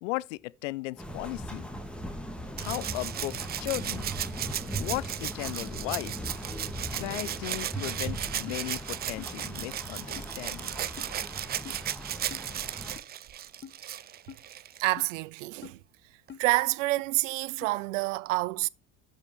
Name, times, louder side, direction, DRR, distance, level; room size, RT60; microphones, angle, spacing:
voice 1, 0.0-1.7 2.6-4.1 4.8-6.1 6.9-10.7, left 21 dB, 75° left, 0.5 m, -36 dB
sound 1, 1.0-13.0, right 1 dB, 5° left, 1.9 m, -39 dB
Rattle (instrument), 2.6-14.9 16.3-16.4, right 11 dB, 25° right, 0.4 m, -36 dB
sound 2, 7.8-7.9 8.5-8.6 9.2-9.3 10.2-10.3 11.0-11.1 11.6-11.8 12.3-12.5 13.0-13.1 13.6-13.8 14.3-14.4 15.0-15.1 15.6-15.8 16.3-16.4 17.0-17.1 17.6-17.7, left 8 dB, 30° left, 1.0 m, -45 dB
voice 2, 14.8-15.8 16.4-18.7, right 21 dB, 80° right, 0.5 m, -28 dB
11.5 x 5.6 x 3.4 m
hypercardioid pair, 80°, 37 cm